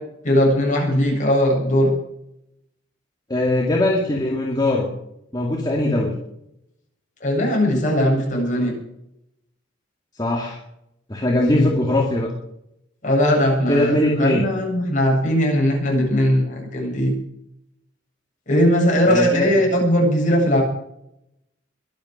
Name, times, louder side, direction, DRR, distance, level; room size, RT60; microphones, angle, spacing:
voice 1, 0.2-1.9 7.2-8.7 11.5-11.6 13.0-17.1 18.5-20.6, equal, 40° left, -1 dB, 7.9 m, -19 dB
voice 2, 3.3-4.9 5.3-6.2 10.2-10.6 11.1-12.3 13.7-14.4 19.1-19.5, left 1 dB, 20° left, -1 dB, 2.3 m, -20 dB
22.5 x 8.9 x 6.6 m, 0.79 s
head